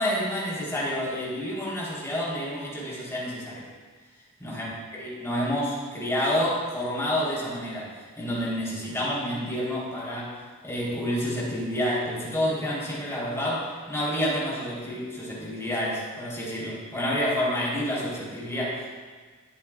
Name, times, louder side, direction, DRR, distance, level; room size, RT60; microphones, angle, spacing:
voice 1, 0.0-3.6 4.4-4.7 4.9-19.0, equal, 15° left, -6 dB, 3.9 m, -29 dB
21.0 x 8.5 x 2.5 m, 1.5 s
head